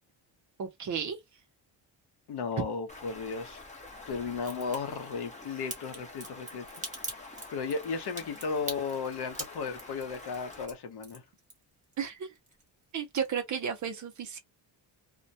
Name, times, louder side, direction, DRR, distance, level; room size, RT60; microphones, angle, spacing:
voice 1, 0.6-1.2 12.0-12.3 12.9-14.4, right 7 dB, 40° right, 0.6 m, -33 dB
voice 2, 2.3-3.6 4.1-6.7 7.0-11.2, left 5 dB, 60° left, 0.8 m, -35 dB
Stream, 2.9-10.7, left 2 dB, 15° left, 0.8 m, -47 dB
Crack, 4.4-4.8 5.7-11.9 12.3-12.9 13.2-13.3, right 2 dB, 15° right, 1.0 m, -41 dB
2.2 x 2.1 x 2.6 m
cardioid pair, 140°, 45 cm